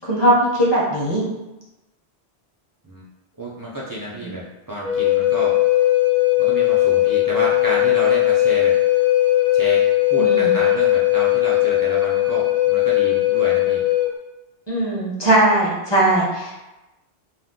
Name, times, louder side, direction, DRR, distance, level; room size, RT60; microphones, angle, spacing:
voice 1, 0.0-1.2 4.1-4.3 10.2-10.5 14.7-16.7, right 1 dB, 25° left, -6 dB, 0.8 m, -19 dB
voice 2, 3.4-5.6 6.4-8.8 9.5-13.8, right 1 dB, 35° right, -7 dB, 0.3 m, -30 dB
Wind instrument woodwind instrument, 4.8-14.1, left 15 dB, 85° left, 1.0 m, -18 dB
2.5 x 2.2 x 3.7 m, 1.0 s
omnidirectional pair, 1.1 m